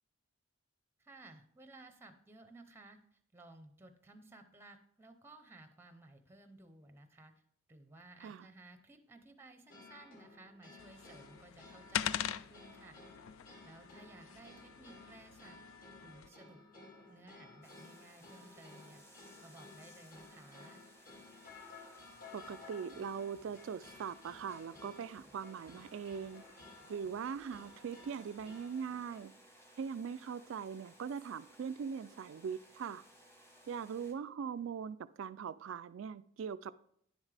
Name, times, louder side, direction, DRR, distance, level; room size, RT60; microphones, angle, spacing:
voice 1, 1.0-3.0 3.3-7.3 7.7-13.0 13.6-15.6 16.0-16.6 17.1-19.0 19.4-20.8, right 2 dB, 10° right, 0.6 m, -57 dB
sound 1, 9.7-29.2, left 3 dB, 40° left, 1.7 m, -56 dB
sound 2, 10.8-16.3, left 10 dB, 70° left, 0.3 m, -42 dB
sound 3, 17.6-34.1, equal, 10° left, 1.1 m, -62 dB
voice 2, 22.3-26.4 26.9-29.3 29.8-33.0 33.7-36.7, right 6 dB, 65° right, 0.3 m, -41 dB
10.5 x 7.2 x 3.3 m
head